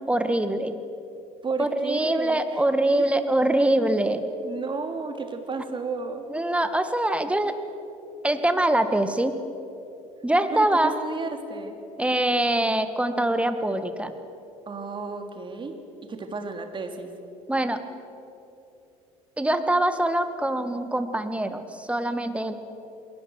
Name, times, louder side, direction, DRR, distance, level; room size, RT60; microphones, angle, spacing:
voice 1, 0.1-0.8 1.6-4.2 6.3-7.6 8.2-9.4 10.2-11.0 12.0-14.1 17.5-17.8 19.4-22.5, right 1 dB, 5° right, 9 dB, 1.9 m, -24 dB
voice 2, 1.4-2.4 4.4-6.2 10.5-11.8 14.7-15.8 16.1-17.1, right 4 dB, 30° right, 5 dB, 3.2 m, -32 dB
29.0 x 21.0 x 6.5 m, 2.9 s
figure-of-eight pair, 60°, 17 cm